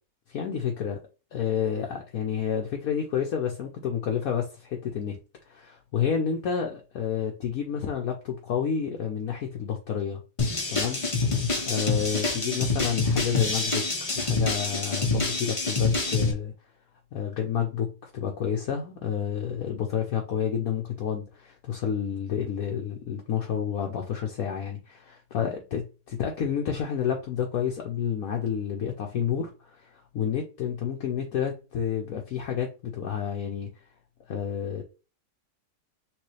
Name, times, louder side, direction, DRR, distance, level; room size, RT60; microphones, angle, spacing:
voice 1, 0.3-1.0 1.3-5.2 5.5-10.2 10.7-11.0 11.7-16.5 17.1-33.7 34.3-34.8, left 8 dB, 65° left, 1.1 m, -30 dB
sound 1, 10.4-16.3, left 3 dB, 30° left, 0.7 m, -26 dB
6.1 x 2.7 x 3.2 m
omnidirectional pair, 1.8 m